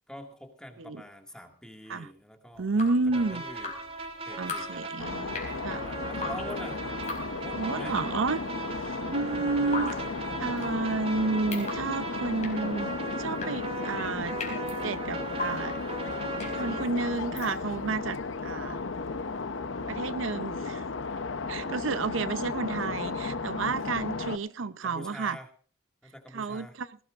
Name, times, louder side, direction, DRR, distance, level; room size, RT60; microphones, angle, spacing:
voice 1, 0.1-3.7 4.0-5.4 5.7-6.8 7.4-8.0 10.6-10.7 24.6-25.5 26.0-26.8, left 1 dB, 5° left, 3 dB, 2.1 m, -46 dB
Drip, 2.5-18.0, left 3 dB, 35° left, 4.1 m, -41 dB
voice 2, 2.6-3.4 4.4-5.3 5.6-5.8 6.2-6.3 7.6-8.4 9.1-10.0 10.4-12.9 13.2-14.3 14.8-15.8 16.5-18.2 18.4-18.8 19.9-20.9 21.5-25.4 26.3-27.0, right 3 dB, 85° right, 14 dB, 0.7 m, -31 dB
sound 1, 3.1-16.8, right 3 dB, 30° right, 2.4 m, -38 dB
sound 2, 5.0-24.4, left 3 dB, 80° left, 0.8 m, -35 dB
20.0 x 17.0 x 2.5 m, 0.44 s
head